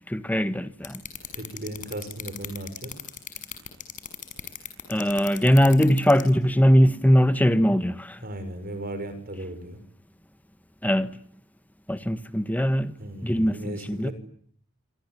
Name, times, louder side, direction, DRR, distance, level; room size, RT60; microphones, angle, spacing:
voice 1, 0.1-1.0 4.9-8.2 10.8-11.1 11.9-12.9 13.2-14.1, equal, 10° left, 1.4 m, -21 dB
sound 1, 0.8-6.3, left 9 dB, 40° left, 6.0 m, -36 dB
voice 2, 1.3-2.9 8.2-9.8 13.0-14.1, right 1 dB, 45° right, 6.5 m, -36 dB
27.5 x 26.0 x 8.3 m
head